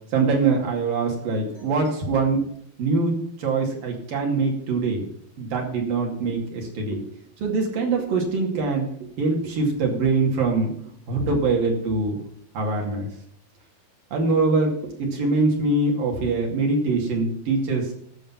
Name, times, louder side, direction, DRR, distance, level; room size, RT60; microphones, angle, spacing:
voice 1, 0.1-2.4 2.8-5.1 5.4-7.0 7.4-10.7 11.1-12.2 12.5-13.1 14.1-17.9, right 3 dB, 60° right, 0 dB, 4.0 m, -23 dB
12.5 x 6.9 x 7.3 m, 0.64 s
omnidirectional pair, 4.5 m